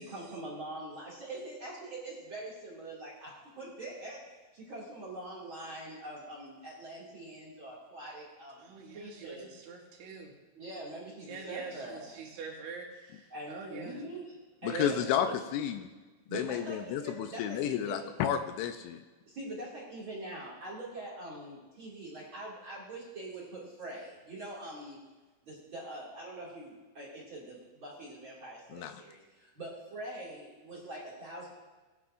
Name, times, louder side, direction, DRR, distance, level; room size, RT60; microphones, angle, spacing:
voice 1, 0.0-9.5 10.5-12.1 13.3-14.4 14.6-15.3 15.8-16.0 16.3-18.1 19.3-25.0 25.4-31.5, right 1 dB, 40° right, -5 dB, 1.9 m, -44 dB
voice 2, 8.6-10.3 11.3-14.0 14.7-14.9, right 5 dB, 70° right, -2 dB, 4.1 m, -44 dB
voice 3, 14.6-15.3 15.5-15.9 16.3-19.0 28.7-28.9, left 10 dB, 80° left, 8 dB, 2.8 m, -31 dB
20.5 x 9.7 x 2.5 m, 1.2 s
omnidirectional pair, 5.8 m